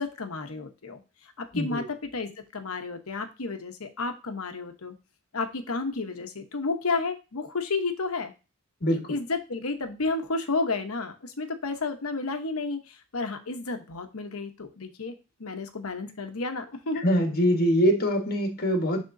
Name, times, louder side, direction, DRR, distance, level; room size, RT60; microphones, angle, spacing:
voice 1, 0.0-5.0 5.3-8.3 9.1-17.0, left 3 dB, 70° left, 6 dB, 1.0 m, -32 dB
voice 2, 1.5-1.9 8.8-9.2 17.0-19.0, equal, 45° left, 3 dB, 1.4 m, -24 dB
10.5 x 3.6 x 2.7 m, 0.31 s
head